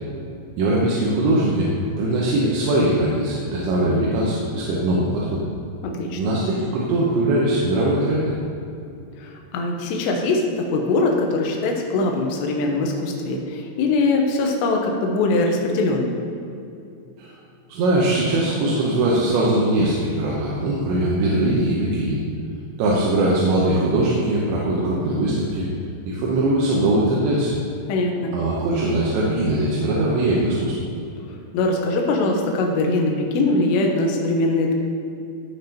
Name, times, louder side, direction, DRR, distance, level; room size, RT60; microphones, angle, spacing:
voice 1, 0.6-1.7 2.0-5.5 6.2-8.3 17.2-17.3 17.7-22.2 22.8-25.6 26.0-27.6 28.3-30.7, right 1 dB, 75° right, -4 dB, 2.9 m, -21 dB
voice 2, 5.8-6.3 9.2-16.2 27.9-28.3 31.5-34.7, left 2 dB, 75° left, 1 dB, 2.8 m, -22 dB
15.0 x 5.8 x 2.9 m, 2.6 s
omnidirectional pair, 5.7 m